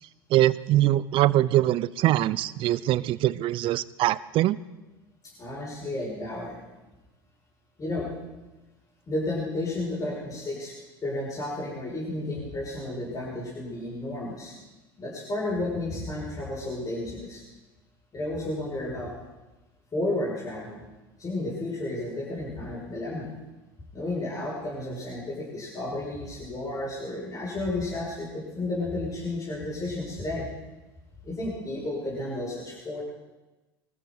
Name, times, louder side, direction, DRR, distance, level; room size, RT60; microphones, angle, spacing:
voice 1, 0.3-4.6, right 14 dB, 45° right, 20 dB, 0.6 m, -23 dB
voice 2, 5.4-6.6 7.8-8.1 9.1-10.7 11.0-14.5 15.0-17.4 18.1-19.1 19.9-20.8 21.2-23.3 23.9-30.5 31.2-33.0, left 2 dB, 30° left, -5 dB, 6.6 m, -32 dB
24.0 x 14.0 x 4.1 m, 1.1 s
hypercardioid pair, 80°, 12 cm